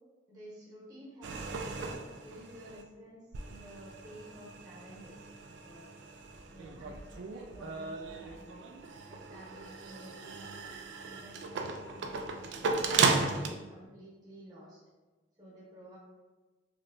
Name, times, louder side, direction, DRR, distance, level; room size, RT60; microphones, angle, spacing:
voice 1, 0.3-5.3 5.6-5.9 6.5-8.5 9.1-10.7 11.0-13.0 13.3-14.8 15.4-16.0, right 1 dB, 20° right, -7 dB, 1.1 m, -52 dB
sound 1, 1.2-2.8 3.3-13.5, right 4 dB, 70° right, 0.3 m, -35 dB
3.2 x 2.9 x 2.6 m, 1.3 s
head